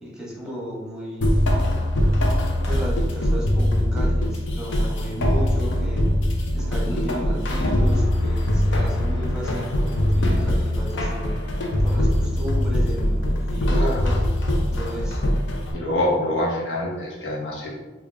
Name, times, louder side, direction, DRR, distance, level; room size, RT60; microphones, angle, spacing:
voice 1, 0.0-1.5 2.6-6.1 6.5-11.4 11.8-14.2 14.6-15.2, equal, 5° right, -5 dB, 0.9 m, -34 dB
sound 1, 1.2-15.7, left 1 dB, 85° left, 0.6 m, -22 dB
voice 2, 15.7-17.7, left 1 dB, 70° left, -3 dB, 0.9 m, -26 dB
3.6 x 2.4 x 3.3 m, 1.2 s
head